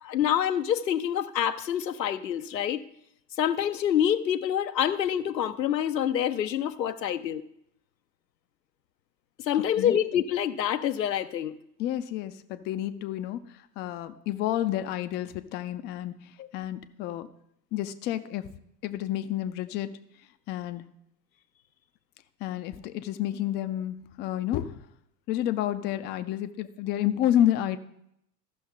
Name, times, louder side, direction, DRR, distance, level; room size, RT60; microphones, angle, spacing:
voice 1, 0.0-2.8 3.4-7.4 9.4-11.6, left 10 dB, 85° left, 10 dB, 0.7 m, -26 dB
voice 2, 9.5-9.9 11.8-17.3 17.7-18.5 18.8-20.0 20.5-20.8 22.4-24.8 25.3-27.8, left 12 dB, 25° left, 10 dB, 0.4 m, -30 dB
14.0 x 6.1 x 3.8 m, 0.76 s
figure-of-eight pair, 85°, 49 cm